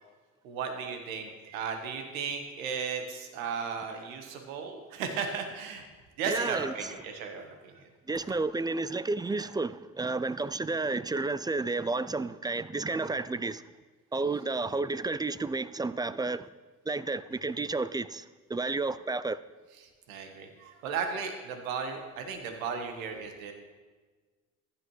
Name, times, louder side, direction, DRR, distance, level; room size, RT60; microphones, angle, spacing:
voice 1, 0.4-5.9 6.2-7.8 13.0-13.1 20.1-23.5, right 6 dB, 85° right, 1.4 m, -35 dB
voice 2, 6.3-6.9 8.1-13.6 14.1-16.5 16.9-19.4, right 3 dB, 10° right, 0.3 m, -31 dB
14.5 x 11.0 x 3.2 m
hypercardioid pair, 60°, 40 cm